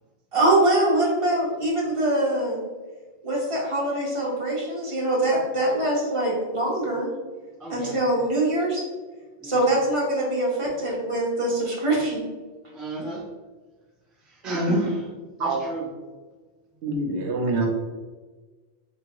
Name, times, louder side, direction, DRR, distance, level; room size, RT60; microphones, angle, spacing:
voice 1, 0.3-2.6 3.2-7.1 7.7-8.8 9.4-12.2, right 1 dB, 30° right, -4 dB, 1.0 m, -23 dB
voice 2, 7.6-8.3 9.4-9.7 10.6-11.0 12.7-13.3 14.2-15.0 15.4-15.9, right 2 dB, ahead, -4 dB, 0.4 m, -36 dB
voice 3, 14.4-14.8 15.4-15.6 16.8-17.7, right 2 dB, 75° right, 1 dB, 0.9 m, -24 dB
3.5 x 2.9 x 3.0 m, 1.3 s
omnidirectional pair, 1.1 m